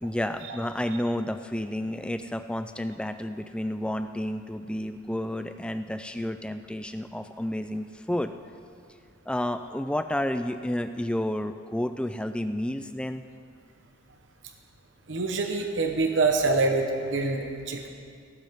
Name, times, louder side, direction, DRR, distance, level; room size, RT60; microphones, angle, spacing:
voice 1, 0.0-8.3 9.3-13.2, left 1 dB, 5° left, 9 dB, 0.3 m, -31 dB
voice 2, 15.1-17.9, right 3 dB, 60° right, 3 dB, 1.0 m, -25 dB
17.5 x 14.5 x 3.6 m, 2.3 s
head